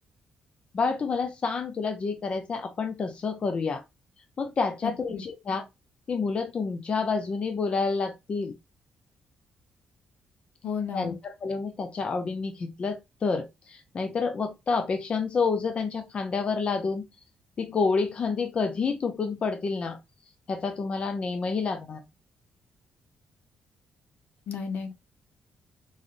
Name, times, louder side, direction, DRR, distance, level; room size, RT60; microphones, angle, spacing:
voice 1, 0.7-3.8 4.4-5.6 6.1-8.5 10.9-17.0 17.6-20.0 20.5-22.0, left 4 dB, 40° left, 0.6 m, -29 dB
voice 2, 4.8-5.2 10.6-11.1 24.5-24.9, left 6 dB, 70° left, 0.9 m, -33 dB
4.0 x 3.2 x 2.5 m
cardioid pair, 115°, 3 cm